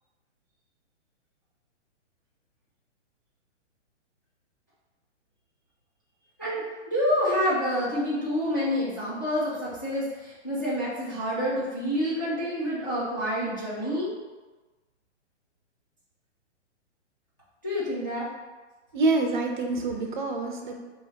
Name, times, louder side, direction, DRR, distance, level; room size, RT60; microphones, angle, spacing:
voice 1, 6.4-14.1 17.6-18.3, equal, 20° left, -11 dB, 0.3 m, -28 dB
voice 2, 18.9-20.7, right 3 dB, 40° right, 3 dB, 0.5 m, -26 dB
2.8 x 2.7 x 4.2 m, 1.2 s
hypercardioid pair, 150°, 36 cm